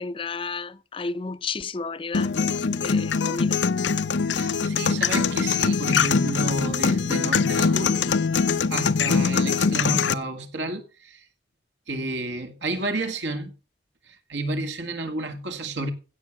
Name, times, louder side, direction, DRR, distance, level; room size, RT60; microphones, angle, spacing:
voice 1, 0.0-3.6, left 4 dB, 30° left, 0.5 m, -33 dB
sound 1, 2.1-10.1, left 5 dB, 75° left, 0.7 m, -23 dB
voice 2, 4.3-8.0 8.7-11.3 11.9-13.5 14.1-15.9, right 2 dB, 80° right, 2.1 m, -30 dB
16.0 x 6.6 x 6.1 m
head